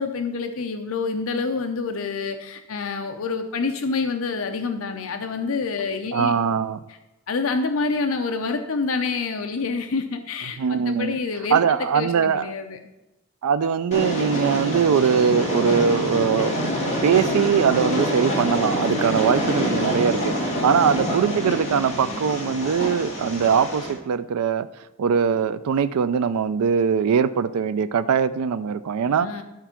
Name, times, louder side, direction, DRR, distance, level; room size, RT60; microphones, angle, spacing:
voice 1, 0.0-6.3 7.3-11.6 11.9-12.8 20.6-21.2 29.0-29.4, left 4 dB, 70° left, 6 dB, 0.6 m, -27 dB
voice 2, 6.1-6.8 10.6-11.2 11.5-12.5 13.4-16.7 17.0-24.7 25.0-29.4, right 6 dB, 85° right, 12 dB, 0.4 m, -21 dB
Train, 13.9-23.9, equal, 30° left, 2.4 m, -26 dB
12.0 x 4.5 x 5.8 m, 1.0 s
head